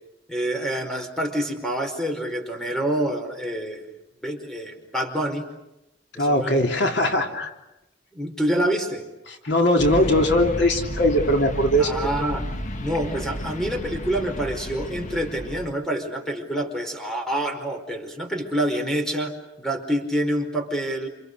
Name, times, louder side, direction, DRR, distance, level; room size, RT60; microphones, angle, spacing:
voice 1, 0.3-3.9 4.2-5.5 6.1-6.6 7.0-7.2 8.1-9.0 11.8-12.4 12.8-21.1, right 1 dB, 5° left, 4 dB, 4.9 m, -27 dB
voice 2, 6.2-7.5 9.3-11.9, left 1 dB, 70° left, 3 dB, 3.2 m, -20 dB
sound 1, 9.8-15.7, equal, 45° left, 1.5 m, -32 dB
29.0 x 28.5 x 6.8 m, 0.94 s
head